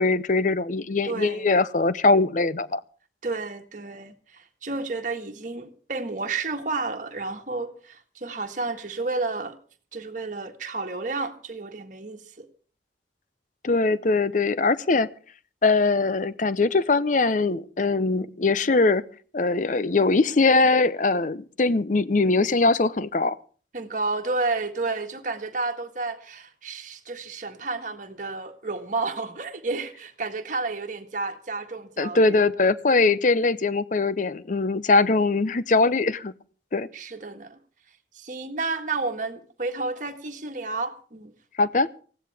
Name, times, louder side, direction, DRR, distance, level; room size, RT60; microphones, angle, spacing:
voice 1, 0.0-2.8 13.6-15.1 15.6-19.0 19.3-23.4 32.0-36.3 36.7-36.9 41.6-41.9, left 3 dB, 45° left, 17 dB, 0.6 m, -21 dB
voice 2, 1.0-1.5 3.2-9.5 9.9-12.5 23.7-32.4 36.9-37.6 38.1-41.3, right 3 dB, 45° right, 5 dB, 1.7 m, -31 dB
20.0 x 15.5 x 3.4 m, 0.41 s
head